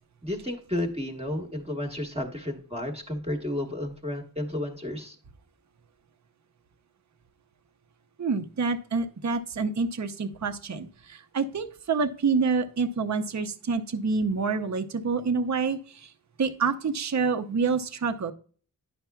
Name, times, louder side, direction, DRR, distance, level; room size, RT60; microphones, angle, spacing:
voice 1, 0.2-5.2, left 1 dB, 15° right, 2 dB, 1.1 m, -32 dB
voice 2, 8.2-16.1 16.4-18.3, right 4 dB, 45° right, 7 dB, 0.6 m, -27 dB
10.0 x 5.6 x 2.3 m, 0.43 s
wide cardioid pair, 65°, 39 cm